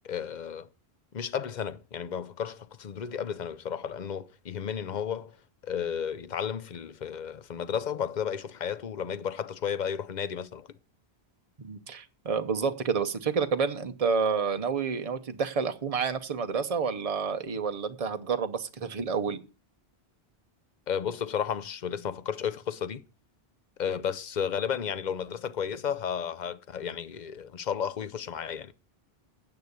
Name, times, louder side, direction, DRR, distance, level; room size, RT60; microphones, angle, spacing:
voice 1, 0.0-0.7 1.1-5.3 5.6-10.7 20.9-23.0 23.8-28.7, left 8 dB, 50° left, 0.7 m, -33 dB
voice 2, 11.6-19.4, right 5 dB, 40° right, 0.8 m, -29 dB
9.3 x 6.9 x 8.1 m
omnidirectional pair, 1.1 m